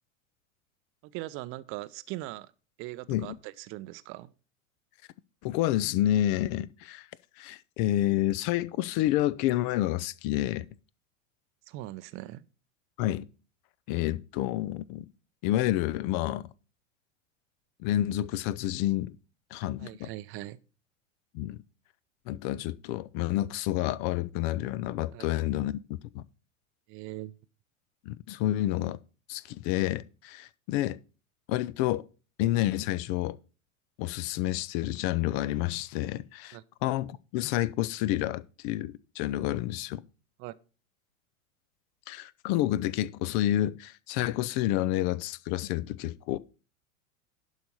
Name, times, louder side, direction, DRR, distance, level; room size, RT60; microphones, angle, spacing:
voice 1, 1.0-2.5 2.8-4.3 11.7-12.5 19.8-20.6 25.1-25.3 26.9-27.4 36.5-36.6 40.4-40.5, right 17 dB, 30° right, 0.6 m, -40 dB
voice 2, 5.4-7.1 7.4-10.7 13.0-13.2 13.9-15.1 15.4-16.5 17.8-19.2 19.5-20.1 21.3-21.6 22.3-25.8 26.1-26.2 28.1-29.0 29.3-31.0 31.5-32.1 32.4-33.4 34.0-40.0 42.1-46.4, left 14 dB, 40° left, 0.6 m, -29 dB
11.5 x 4.9 x 5.5 m
figure-of-eight pair, 90°, 40 cm